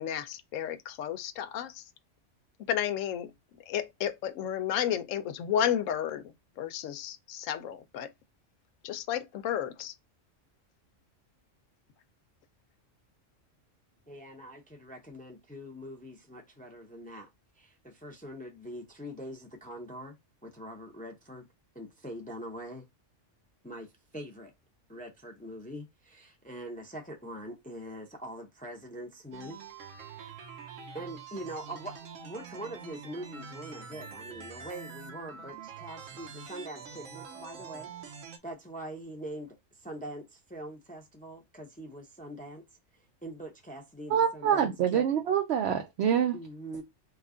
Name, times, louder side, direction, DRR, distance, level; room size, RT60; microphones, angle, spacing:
voice 1, 0.0-1.8 2.7-3.3 3.7-6.2 6.6-8.1 8.8-9.9, left 10 dB, 85° left, 0.9 m, -32 dB
voice 2, 14.1-17.3 17.6-20.1 20.4-21.5 21.7-22.8 23.6-24.5 24.9-29.6 30.2-30.3 30.9-32.0 32.2-37.9 38.4-42.6 43.2-45.1 46.3-46.8, right 1 dB, 10° left, 0.5 m, -43 dB
sound 1, 29.3-38.4, right 6 dB, 80° right, 1.1 m, -45 dB
voice 3, 44.1-46.4, right 8 dB, 65° right, 0.8 m, -26 dB
3.2 x 2.3 x 3.7 m
omnidirectional pair, 1.3 m